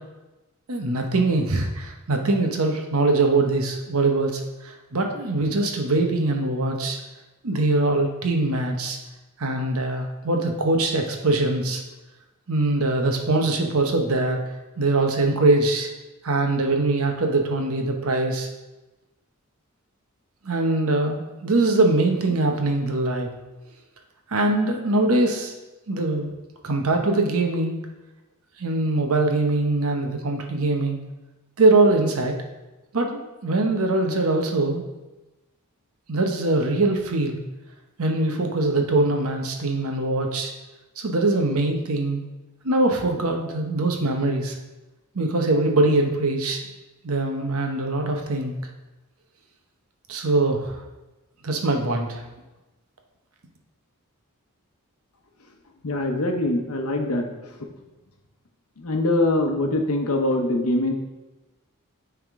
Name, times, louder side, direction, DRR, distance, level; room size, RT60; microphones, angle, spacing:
voice 1, 0.7-7.0 7.4-9.0 9.4-11.8 12.5-14.4 14.8-15.9 16.2-18.5 20.4-23.3 24.3-25.5 25.9-26.3 26.6-27.8 28.6-31.0 31.6-32.4 32.9-34.8 36.1-37.4 38.0-40.5 41.0-42.2 42.6-44.6 45.1-46.6 47.0-48.6 50.1-50.8 51.4-52.3, right 2 dB, 75° right, 3 dB, 0.9 m, -22 dB
voice 2, 55.8-57.5 58.8-60.9, left 2 dB, 80° left, 3 dB, 0.8 m, -23 dB
9.2 x 3.6 x 3.6 m, 1.1 s
head